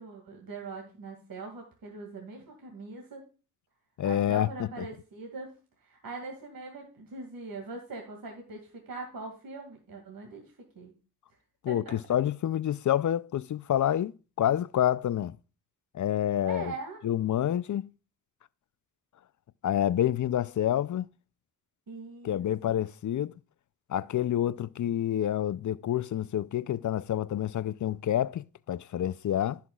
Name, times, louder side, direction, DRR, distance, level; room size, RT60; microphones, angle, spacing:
voice 1, 0.0-3.2 4.0-5.5 5.8-10.4 10.8-10.9 11.7-11.9 16.4-17.0 21.9-22.8, right 3 dB, 65° right, 2.2 m, -42 dB
voice 2, 4.0-4.9 11.6-14.1 14.4-15.4 15.9-16.7 17.0-17.9 19.6-21.1 22.2-23.3 23.9-29.6, left 11 dB, 55° left, 0.5 m, -28 dB
16.0 x 5.8 x 2.3 m
cardioid pair, 60°, 37 cm